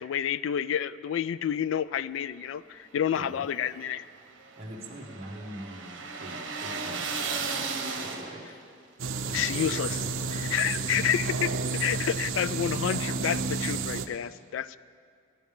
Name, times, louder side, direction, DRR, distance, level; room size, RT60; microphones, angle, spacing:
voice 1, 0.0-4.1 9.3-10.0 10.5-14.8, left 9 dB, 85° left, 17 dB, 0.3 m, -29 dB
sound 1, 3.2-8.6, right 4 dB, 70° right, 1.2 m, -35 dB
voice 2, 4.6-8.6 9.2-11.1, right 1 dB, 30° right, -4 dB, 1.6 m, -43 dB
sound 2, 9.0-14.1, right 4 dB, 90° right, 0.6 m, -31 dB
16.5 x 11.0 x 3.6 m, 2.2 s
head